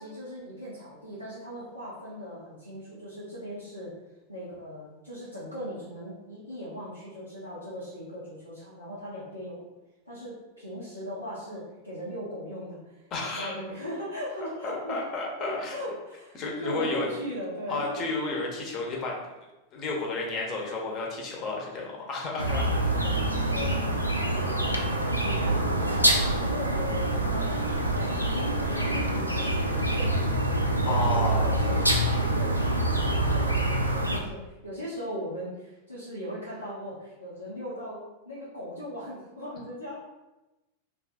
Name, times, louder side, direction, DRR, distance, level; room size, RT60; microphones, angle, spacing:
voice 1, 0.0-3.9 4.3-9.6 10.0-15.0 15.4-18.1 22.5-30.3 30.8-40.0, equal, 85° left, -11 dB, 0.8 m, -39 dB
voice 2, 13.1-13.5 14.6-15.7 16.3-17.1 17.7-19.2 19.7-22.7 30.8-31.5, left 3 dB, 35° left, -2 dB, 0.8 m, -31 dB
sound 1, 22.4-34.2, right 1 dB, 90° right, 0.3 m, -26 dB
2.6 x 2.6 x 3.4 m, 1.0 s
figure-of-eight pair, 90°, 0 cm